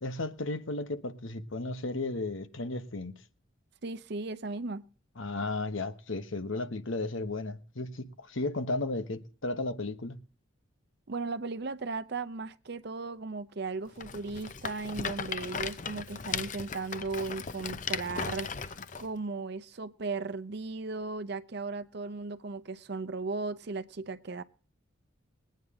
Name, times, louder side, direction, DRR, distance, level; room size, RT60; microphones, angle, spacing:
voice 1, 0.0-3.2 5.2-10.2, left 2 dB, 75° left, 1.2 m, -34 dB
voice 2, 3.8-4.8 11.1-24.4, right 3 dB, 55° right, 0.7 m, -36 dB
Rattle, 14.0-19.1, left 6 dB, 40° left, 0.7 m, -37 dB
21.0 x 9.2 x 3.7 m
head